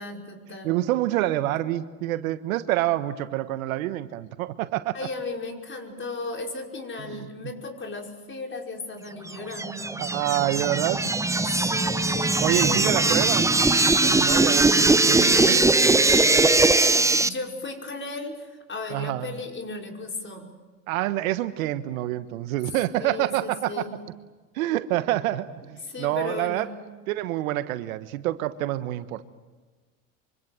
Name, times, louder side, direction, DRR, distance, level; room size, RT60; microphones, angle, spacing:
voice 1, 0.0-0.8 4.9-10.0 11.4-13.3 16.7-20.5 23.0-23.9 25.8-26.7, left 3 dB, 30° left, 2 dB, 5.4 m, -35 dB
voice 2, 0.6-5.0 7.1-7.3 10.0-11.0 11.6-11.7 12.4-13.5 14.0-15.6 18.9-19.3 20.9-23.7 24.5-26.7 27.1-29.2, right 15 dB, 80° right, 12 dB, 1.3 m, -27 dB
sound 1, 9.3-17.3, right 2 dB, 5° right, 0.7 m, -20 dB
25.0 x 25.0 x 7.7 m, 1.3 s
hypercardioid pair, 85°, 41 cm